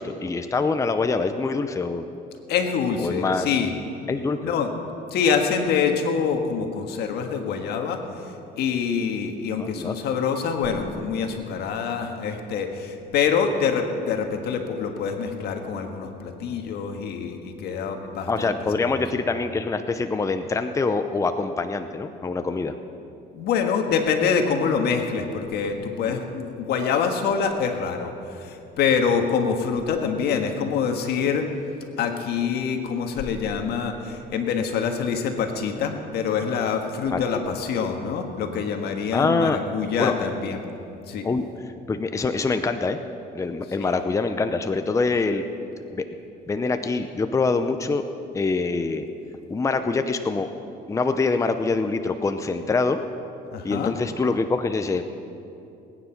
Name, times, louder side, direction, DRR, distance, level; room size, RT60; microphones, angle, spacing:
voice 1, 0.0-2.1 3.0-3.5 4.1-4.5 9.6-10.0 18.3-22.7 26.1-26.2 37.1-37.2 39.1-39.6 40.0-40.1 41.2-41.5 41.9-43.0 43.3-45.4 45.9-46.1 46.5-48.0 48.3-49.1 49.5-50.5 50.9-53.0 53.6-55.0, left 3 dB, 20° left, 8 dB, 0.6 m, -24 dB
voice 2, 2.5-3.7 4.4-4.7 5.1-8.0 8.6-18.5 23.3-31.5 32.0-40.6 41.1-41.2 43.8-44.0 53.5-53.9, left 6 dB, 75° left, 4 dB, 1.6 m, -25 dB
20.0 x 9.7 x 5.9 m, 2.7 s
cardioid pair, 110°, 17 cm